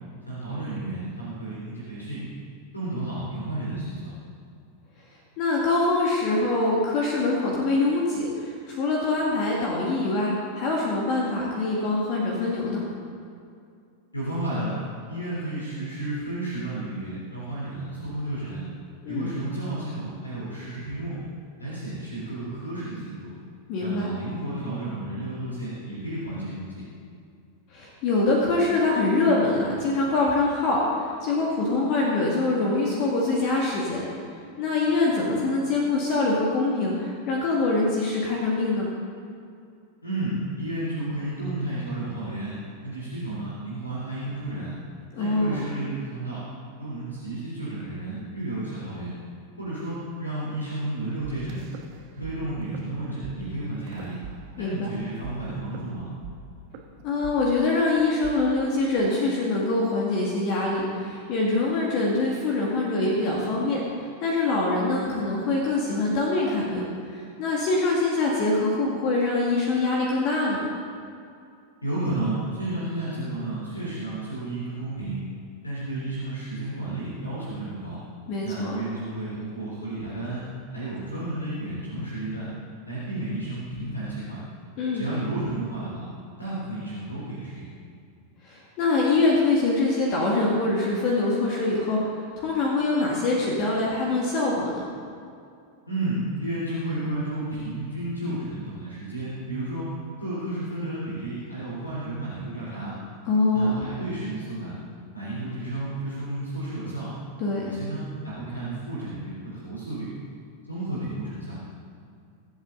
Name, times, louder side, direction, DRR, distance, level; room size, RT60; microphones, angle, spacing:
voice 1, 0.3-2.2 2.7-4.1 14.1-14.7 15.1-18.6 19.1-21.2 21.6-23.3 23.8-26.8 40.0-42.5 42.8-44.7 45.2-46.4 46.8-49.1 49.6-51.6 52.1-54.2 54.6-56.0 71.8-75.2 75.6-78.0 78.4-80.4 80.7-82.5 82.8-84.4 84.9-86.0 86.4-87.7 95.9-99.8 100.2-102.9 103.5-104.7 105.1-107.1 107.6-110.1 110.7-111.6, right 2 dB, 80° left, -8 dB, 3.6 m, -32 dB
voice 2, 5.4-12.8 19.0-19.3 23.7-24.1 27.7-34.0 34.6-38.9 45.1-45.6 54.6-54.9 57.0-66.8 67.1-70.6 78.3-78.8 84.8-85.1 88.4-92.0 92.4-94.8 103.3-103.9 107.4-107.8, left 2 dB, 45° left, -3 dB, 2.1 m, -24 dB
sound 1, 51.2-52.3 52.6-52.8 53.2-53.3 53.9-54.9 55.2-59.2, right 6 dB, 45° right, 1.4 m, -42 dB
22.5 x 8.3 x 3.9 m, 2.4 s
figure-of-eight pair, 90°, 0 cm